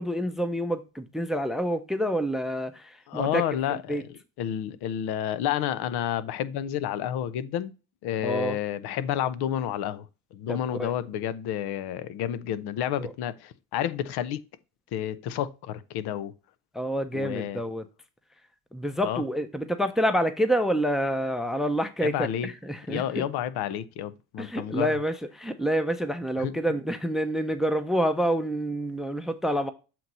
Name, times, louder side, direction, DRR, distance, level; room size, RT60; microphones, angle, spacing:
voice 1, 0.0-3.4 3.7-4.0 8.2-8.6 10.5-10.9 13.0-13.1 16.7-17.9 18.7-23.3 24.4-29.7, equal, ahead, 0.6 m, -28 dB
voice 2, 3.1-4.0 4.4-7.7 8.0-14.4 14.9-16.3 17.1-17.6 19.0-19.2 22.0-22.5 22.9-24.9 26.4-26.5, left 10 dB, 65° left, 0.8 m, -30 dB
7.6 x 2.9 x 5.3 m
supercardioid pair, 90°, 41 cm